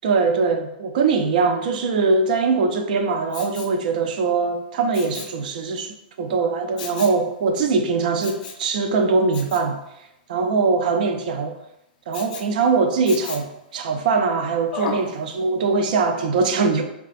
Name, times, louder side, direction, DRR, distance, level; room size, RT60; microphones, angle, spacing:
voice 1, 0.0-9.8 10.3-11.6 12.1-16.8, right 4 dB, 60° right, 6 dB, 0.3 m, -22 dB
Respiratory sounds, 3.3-3.8 4.9-5.4 6.8-7.2 8.2-8.7 9.3-9.7 12.1-12.5 13.1-13.6 14.7-15.1 15.6-15.7, left 5 dB, 55° left, 0.4 m, -34 dB
2.4 x 2.3 x 2.4 m, 0.85 s
hypercardioid pair, 155°, 5 cm